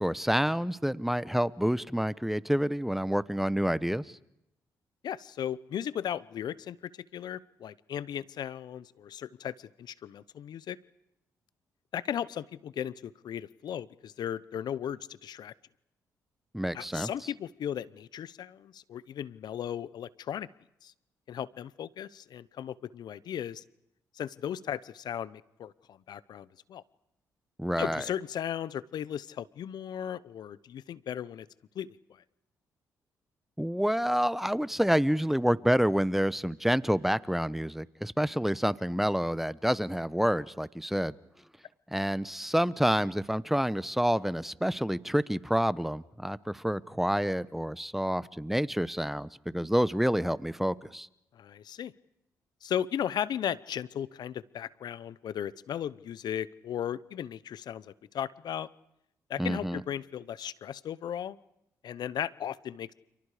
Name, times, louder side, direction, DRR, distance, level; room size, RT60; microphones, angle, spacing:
voice 1, 0.0-4.1 16.5-17.1 27.6-28.0 33.6-41.1 41.9-49.3 49.5-51.1 59.4-59.8, equal, 5° right, 17 dB, 1.1 m, -28 dB
voice 2, 5.0-10.8 11.9-15.5 16.7-20.5 20.8-20.9 21.3-23.6 24.1-26.8 27.8-31.5 31.7-32.2 51.3-51.9 52.6-58.7 59.3-61.4 61.8-62.9, left 9 dB, 70° left, 19 dB, 0.9 m, -36 dB
30.0 x 28.5 x 5.0 m, 0.82 s
supercardioid pair, 60°, 7 cm